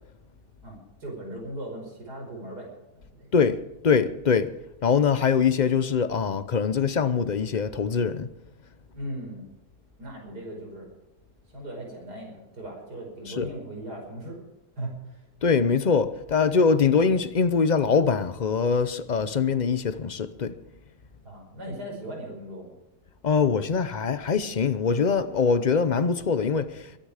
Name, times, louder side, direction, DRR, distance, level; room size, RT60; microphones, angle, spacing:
voice 1, 0.6-3.3 8.9-9.5 10.0-10.9 11.5-14.4 14.8-15.2 21.2-22.7, right 1 dB, 75° right, 5.7 m, -38 dB
voice 2, 3.8-4.5 4.8-8.3 13.3-13.5 15.4-20.5 23.2-27.0, left 5 dB, 40° left, 0.6 m, -23 dB
22.5 x 10.0 x 5.0 m
omnidirectional pair, 1.7 m